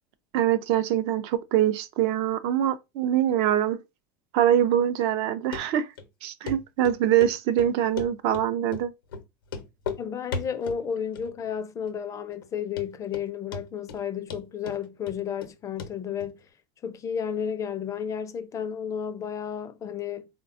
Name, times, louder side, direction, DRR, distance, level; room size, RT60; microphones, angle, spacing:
voice 1, 0.3-3.8 4.3-5.9 6.2-8.9, right 11 dB, 60° right, 0.4 m, -24 dB
Run, 5.5-5.6 6.0-6.1 6.5-6.6 6.8-7.3 7.6-8.5 8.7-8.9 9.1-9.2 9.5-10.0 10.3-10.8 11.2-11.6 11.9-12.0 12.4-12.5 12.8-13.3 13.5-14.0 14.3-15.5 15.8-15.9 16.2-16.3, left 5 dB, 90° left, 0.6 m, -35 dB
voice 2, 10.0-16.4 16.8-20.3, left 8 dB, 30° left, 0.4 m, -32 dB
3.4 x 2.2 x 2.5 m
supercardioid pair, 105°, 11 cm